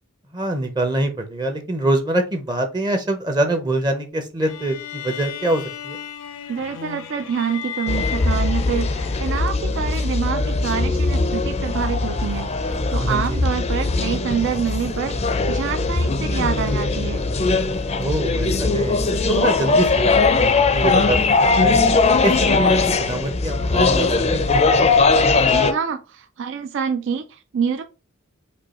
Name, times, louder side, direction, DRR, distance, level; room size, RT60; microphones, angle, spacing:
voice 1, 0.3-6.0 13.0-13.4 18.0-21.3 21.6-21.8 22.2-24.5, right 1 dB, 20° right, 5 dB, 0.6 m, -24 dB
sound 1, 4.4-9.7, left 9 dB, 85° left, 0.6 m, -35 dB
voice 2, 6.5-17.2 25.5-27.8, right 7 dB, 60° right, 7 dB, 0.4 m, -26 dB
sound 2, 7.9-25.7, left 3 dB, 30° left, 0.4 m, -20 dB
5.3 x 2.3 x 4.2 m, 0.30 s
head